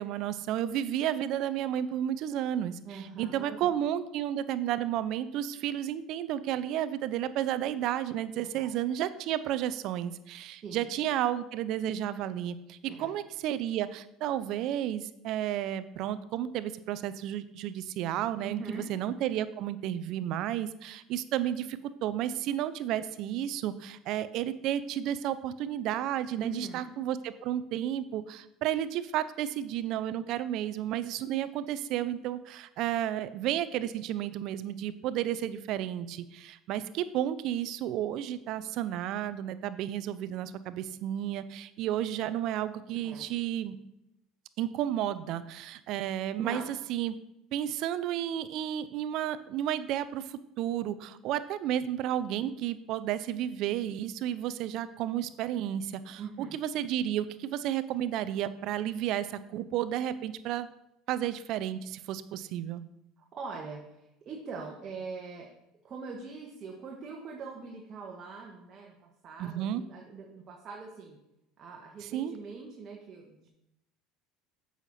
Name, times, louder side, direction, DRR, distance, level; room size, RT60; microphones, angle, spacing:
voice 1, 0.0-43.8 44.6-46.6 46.9-47.1 47.5-60.7 61.1-62.8 69.4-69.8 72.1-72.3, right 11 dB, 60° right, 14 dB, 0.5 m, -32 dB
voice 2, 2.8-3.3 3.6-3.7 10.6-10.9 12.9-13.1 18.4-18.9 26.4-26.9 43.0-43.2 46.4-46.7 56.2-56.6 63.2-65.5 65.8-71.2 71.6-73.5, right 4 dB, 40° right, -1 dB, 1.5 m, -42 dB
8.0 x 6.5 x 4.3 m, 0.86 s
supercardioid pair, 95°, 0 cm